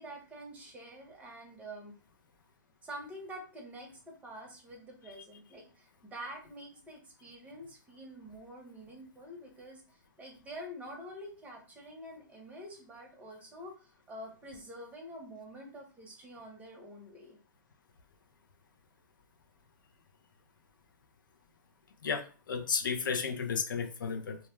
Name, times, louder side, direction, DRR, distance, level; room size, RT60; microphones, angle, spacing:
voice 1, 0.0-1.9 2.8-17.4, equal, 15° right, 1 dB, 0.8 m, -47 dB
voice 2, 22.0-24.4, left 6 dB, 80° left, 5 dB, 0.5 m, -33 dB
2.3 x 2.1 x 3.0 m, 0.36 s
hypercardioid pair, 135°, 11 cm